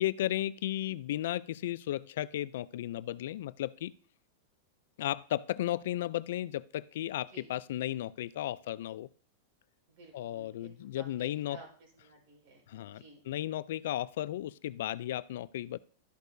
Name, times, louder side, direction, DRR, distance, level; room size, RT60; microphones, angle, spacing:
voice 1, 0.0-3.9 5.0-9.1 10.1-11.6 12.7-15.8, left 13 dB, 65° left, 19 dB, 0.3 m, -34 dB
voice 2, 9.9-10.7 10.9-13.2, right 3 dB, 55° right, 1 dB, 4.7 m, -54 dB
13.0 x 6.5 x 2.6 m, 0.44 s
supercardioid pair, 165°, 0 cm